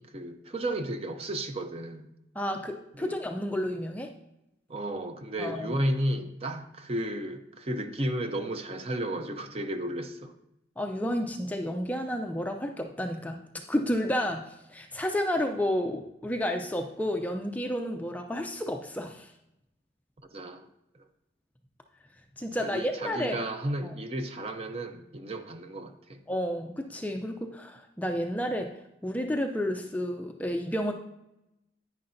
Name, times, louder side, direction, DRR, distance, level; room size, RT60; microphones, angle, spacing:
voice 1, 0.0-2.1 3.0-3.1 4.7-10.3 20.3-20.7 22.6-26.2, right 1 dB, 30° right, 7 dB, 0.6 m, -33 dB
voice 2, 2.4-4.1 5.4-5.8 10.8-13.4 13.7-19.3 22.4-23.4 23.8-23.9 26.3-28.7 29.0-30.9, equal, 10° left, 3 dB, 0.4 m, -31 dB
9.8 x 9.5 x 2.6 m, 0.86 s
head